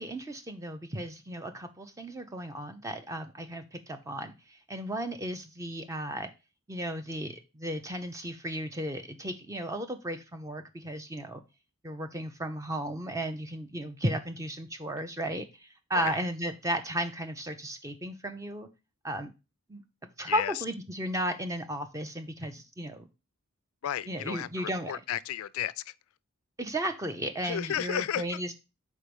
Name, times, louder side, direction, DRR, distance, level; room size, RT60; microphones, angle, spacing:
voice 1, 0.0-6.3 6.7-11.4 11.8-18.7 19.0-19.3 19.7-19.8 20.2-23.1 24.1-24.9 26.6-28.6, right 1 dB, 15° right, 0.5 m, -34 dB
voice 2, 20.3-20.6 23.8-25.9 27.4-28.4, left 10 dB, 70° left, 0.3 m, -33 dB
4.5 x 4.2 x 5.2 m
head